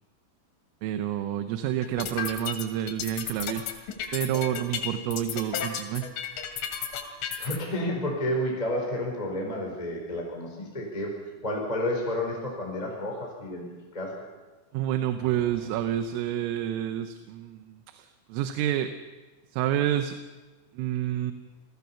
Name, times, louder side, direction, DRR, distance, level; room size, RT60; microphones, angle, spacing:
voice 1, 0.8-3.6 4.1-6.0 14.7-18.9 19.5-20.2 20.7-21.3, right 11 dB, 80° right, 8 dB, 3.4 m, -29 dB
sound 1, 1.8-7.6, left 8 dB, 70° left, 4.5 m, -33 dB
voice 2, 7.4-11.1 11.4-13.7 13.9-14.1, left 1 dB, 10° left, 0 dB, 3.9 m, -30 dB
sound 2, 15.2-17.2, left 1 dB, 40° left, 6.4 m, -52 dB
28.5 x 19.0 x 5.7 m, 1.3 s
omnidirectional pair, 6.0 m